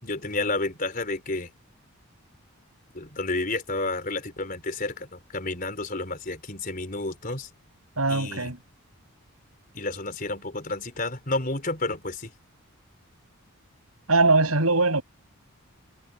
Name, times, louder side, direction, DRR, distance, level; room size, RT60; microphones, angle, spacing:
voice 1, 0.0-1.5 2.9-7.5 8.1-8.5 9.7-12.3, left 2 dB, 40° left, 4.5 m, -30 dB
voice 2, 8.0-8.6 14.1-15.0, right 3 dB, 80° right, 7.7 m, -21 dB
head